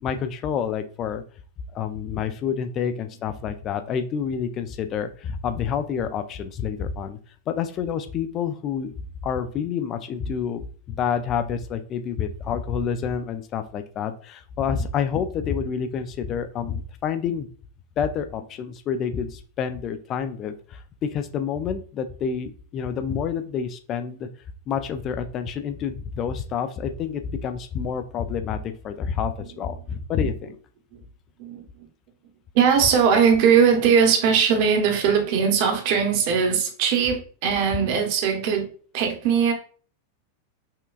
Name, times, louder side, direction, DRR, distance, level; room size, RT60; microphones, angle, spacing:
voice 1, 0.0-1.2 1.7-7.2 7.5-8.9 9.2-17.5 18.0-24.3 24.7-30.6, left 7 dB, 30° left, 0.4 m, -28 dB
voice 2, 32.5-38.7 38.9-39.5, right 7 dB, 45° right, 0.9 m, -20 dB
5.6 x 2.2 x 2.4 m
figure-of-eight pair, 90°, 0 cm